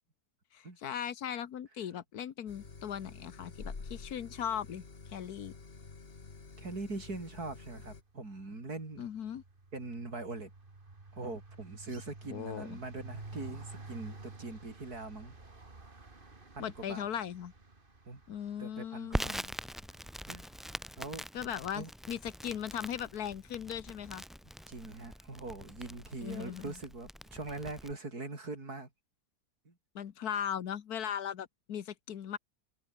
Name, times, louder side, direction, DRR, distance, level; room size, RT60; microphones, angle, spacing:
voice 1, 0.5-4.8 5.1-5.5 9.0-9.4 12.3-12.8 16.6-17.5 18.3-19.5 21.3-24.2 26.2-26.7 29.9-32.4, left 9 dB, 75° left, 1.6 m, -38 dB
sound 1, 2.5-8.0, left 4 dB, 40° left, 2.0 m, -48 dB
voice 2, 6.6-9.1 9.7-10.5 11.1-15.4 16.6-17.1 18.1-18.2 18.6-19.4 20.3-20.5 21.0-21.3 21.7-21.9 24.7-28.9 29.7-29.8, right 3 dB, 75° right, 5.3 m, -42 dB
sound 2, 7.2-7.6 7.9-21.0, right 3 dB, 35° right, 2.7 m, -51 dB
Crackle, 19.1-27.9, equal, ahead, 4.3 m, -43 dB
omnidirectional pair, 1.7 m